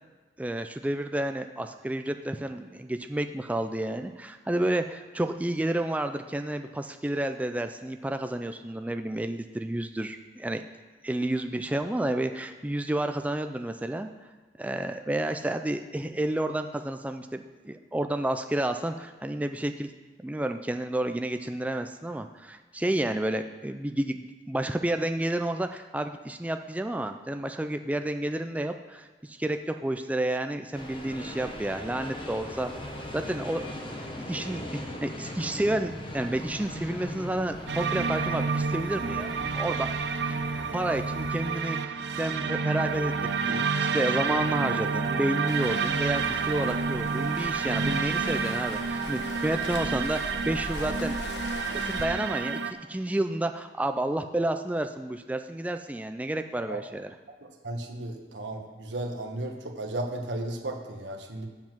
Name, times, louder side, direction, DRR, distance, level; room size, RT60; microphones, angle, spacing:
voice 1, 0.4-10.6 11.0-14.1 14.6-19.9 20.2-32.7 33.1-33.8 34.2-39.9 40.2-40.4 40.7-43.1 43.5-51.2 51.9-57.1, right 1 dB, 10° right, 7 dB, 0.3 m, -30 dB
sound 1, 30.7-41.4, left 1 dB, 30° left, 1.1 m, -40 dB
sound 2, 37.7-52.7, right 5 dB, 70° right, 0.5 m, -29 dB
Waves surf, 45.5-52.0, left 2 dB, 75° left, 1.0 m, -40 dB
voice 2, 57.6-61.5, right 1 dB, 90° right, 3 dB, 1.3 m, -34 dB
7.5 x 7.1 x 6.0 m, 1.3 s
head